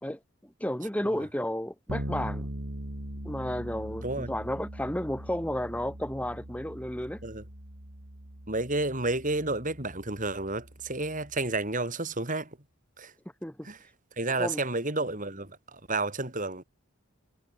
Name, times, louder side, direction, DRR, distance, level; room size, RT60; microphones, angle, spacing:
voice 1, 0.0-2.5 3.2-7.2 13.4-13.7 14.4-14.6, left 1 dB, 5° left, 1.7 m, -32 dB
Bass guitar, 1.9-11.5, right 1 dB, 60° right, 3.5 m, -41 dB
voice 2, 8.5-12.5 13.0-13.1 13.6-13.8 14.2-16.6, right 2 dB, 35° right, 5.9 m, -31 dB
head